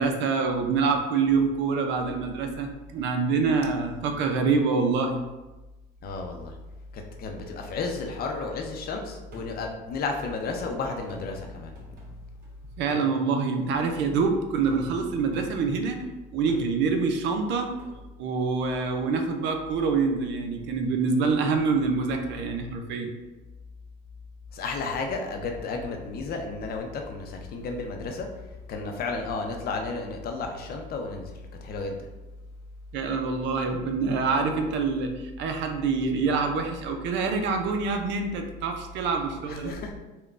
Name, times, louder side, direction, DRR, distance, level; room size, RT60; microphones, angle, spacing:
voice 1, 0.0-5.2 12.8-16.0 16.3-17.7 18.2-23.1 32.9-39.7, right 4 dB, 70° right, 5 dB, 0.5 m, -26 dB
voice 2, 6.0-6.5 6.9-11.7 24.5-28.3 28.7-32.0 39.5-39.9, left 3 dB, 50° left, 3 dB, 0.6 m, -32 dB
sound 1, 9.3-12.5 12.9-16.1 16.5-17.9, left 1 dB, 45° right, 1.1 m, -49 dB
3.7 x 2.2 x 2.4 m, 1.1 s
supercardioid pair, 90°, 20 cm